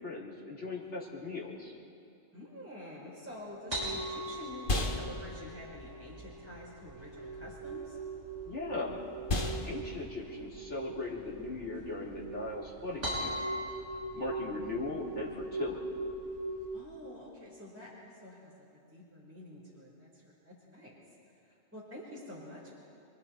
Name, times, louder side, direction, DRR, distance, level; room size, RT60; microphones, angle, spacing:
voice 1, 0.0-1.7 8.5-9.1 9.6-13.4 14.1-15.9, left 2 dB, 80° left, -5 dB, 3.3 m, -38 dB
voice 2, 2.3-8.0 16.7-21.0 21.4-22.7, left 1 dB, 10° right, -5 dB, 4.2 m, -48 dB
sound 1, 3.3-12.9, left 2 dB, 50° left, 1.6 m, -39 dB
sound 2, 3.7-16.8, right 1 dB, 35° right, 6.2 m, -40 dB
28.0 x 23.0 x 4.3 m, 2.5 s
omnidirectional pair, 1.2 m